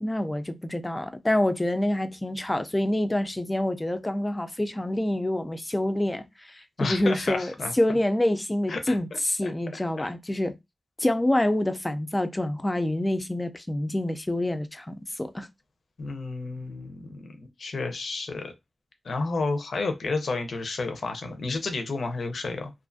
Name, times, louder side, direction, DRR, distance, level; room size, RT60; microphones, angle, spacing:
voice 1, 0.0-10.6 11.0-15.5, left 1 dB, 20° left, 0.3 m, -27 dB
voice 2, 6.8-7.7 8.7-10.1 16.0-18.5 19.0-22.7, left 3 dB, 75° left, 0.5 m, -31 dB
2.5 x 2.3 x 2.5 m
wide cardioid pair, 90°, 0 cm